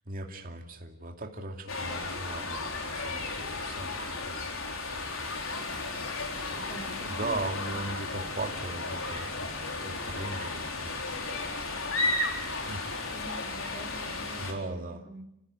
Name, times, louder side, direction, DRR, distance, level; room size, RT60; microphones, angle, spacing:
voice 1, 0.0-5.1 7.1-11.1 12.6-12.9 14.4-15.0, right 2 dB, 45° right, 3 dB, 2.5 m, -39 dB
sound 1, 1.7-14.5, left 3 dB, 80° left, 4.2 m, -34 dB
voice 2, 6.5-8.0 13.1-15.2, right 1 dB, 5° right, 3 dB, 2.5 m, -46 dB
29.0 x 15.5 x 8.5 m, 0.84 s
head